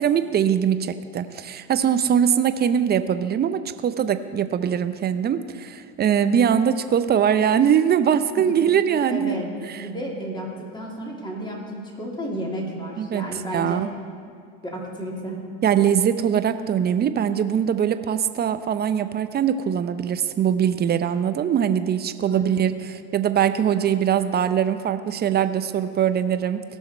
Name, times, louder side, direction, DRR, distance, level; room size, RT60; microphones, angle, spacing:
voice 1, 0.0-9.4 9.6-9.9 13.0-13.9 15.6-26.6, right 8 dB, 30° right, 11 dB, 0.7 m, -22 dB
voice 2, 9.1-9.5 9.8-13.8 14.6-15.4 22.3-22.7, equal, 15° left, -2 dB, 3.0 m, -32 dB
18.0 x 6.4 x 4.4 m, 2.3 s
hypercardioid pair, 90°, 35 cm